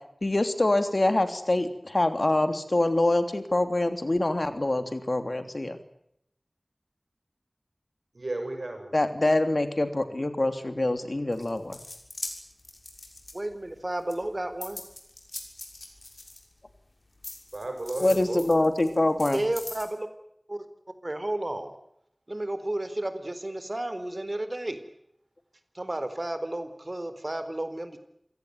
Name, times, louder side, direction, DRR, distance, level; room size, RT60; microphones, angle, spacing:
voice 1, 0.2-5.8 8.9-11.8 18.0-19.4, left 2 dB, 60° left, 9 dB, 3.2 m, -25 dB
voice 2, 8.1-9.1 17.5-19.1, right 2 dB, 85° right, 5 dB, 7.7 m, -35 dB
sound 1, 11.3-13.7 14.1-16.8 17.2-19.9, left 2 dB, 75° left, 6.4 m, -41 dB
voice 3, 13.3-14.8 19.3-20.1 20.5-20.6 21.0-21.7 22.3-24.8 25.7-28.0, right 1 dB, 45° right, 11 dB, 4.1 m, -32 dB
28.0 x 17.5 x 9.5 m, 0.75 s
wide cardioid pair, 50°, 0 cm